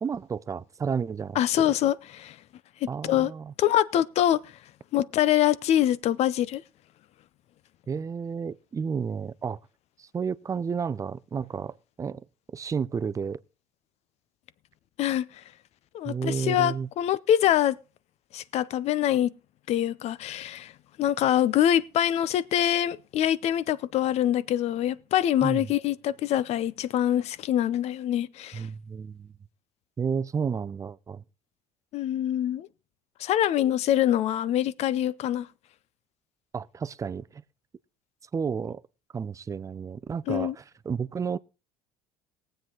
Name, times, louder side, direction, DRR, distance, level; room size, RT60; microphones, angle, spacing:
voice 1, 0.0-1.7 2.9-3.5 7.9-9.6 10.0-13.4 16.0-16.9 25.4-25.7 28.5-29.3 30.0-31.2 36.5-37.4 38.3-38.8 39.1-41.4, right 6 dB, 25° right, 0.5 m, -32 dB
voice 2, 1.4-2.4 2.8-3.3 3.6-4.4 4.9-6.6 15.0-15.3 15.9-17.8 18.3-19.3 19.7-20.7 21.0-28.7 31.9-32.7 33.2-35.5 40.3-40.5, left 11 dB, 55° left, 0.6 m, -24 dB
19.0 x 7.9 x 3.8 m
supercardioid pair, 90°, 13 cm